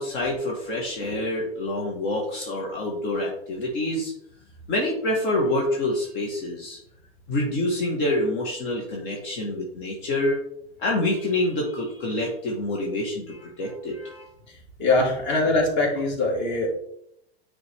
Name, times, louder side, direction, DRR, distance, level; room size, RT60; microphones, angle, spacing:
voice 1, 0.0-4.1 4.7-6.8 7.3-10.4 10.8-14.3, left 1 dB, 55° left, -2 dB, 1.7 m, -27 dB
voice 2, 14.8-16.8, left 2 dB, 35° left, 1 dB, 2.3 m, -22 dB
9.4 x 4.0 x 3.5 m, 0.75 s
figure-of-eight pair, 95°, 32 cm